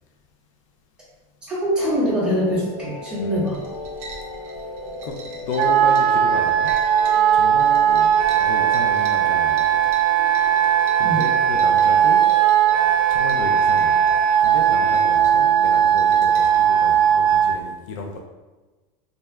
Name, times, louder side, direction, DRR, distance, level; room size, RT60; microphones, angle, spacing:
voice 1, 1.5-3.5 11.0-11.2, equal, 5° right, -10 dB, 1.4 m, -23 dB
sound 1, 1.8-17.4, left 2 dB, 85° left, 1.0 m, -37 dB
voice 2, 3.2-3.5 4.3-4.6 5.0-6.7 7.3-9.9 11.0-12.2 12.5-12.7 13.1-18.2, left 3 dB, 60° left, 2 dB, 0.4 m, -33 dB
sound 2, 3.3-16.6, right 3 dB, 45° right, 0.7 m, -43 dB
Wind instrument woodwind instrument, 5.5-17.6, right 9 dB, 75° right, 0.4 m, -18 dB
3.9 x 3.2 x 2.3 m, 1.2 s
supercardioid pair, 170°, 18 cm